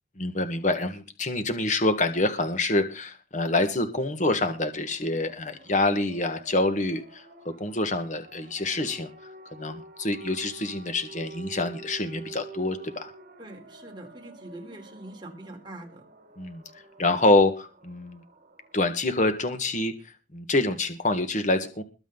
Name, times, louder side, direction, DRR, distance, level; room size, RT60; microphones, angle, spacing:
voice 1, 0.2-9.1 9.5-13.1 16.4-16.6 17.0-18.2 18.7-19.9 20.3-21.8, left 2 dB, 45° left, 8 dB, 1.7 m, -26 dB
sound 1, 4.1-18.8, right 4 dB, 50° right, 4.6 m, -48 dB
voice 2, 13.4-16.0, right 1 dB, 25° right, 2 dB, 4.0 m, -43 dB
22.0 x 7.9 x 4.0 m, 0.32 s
head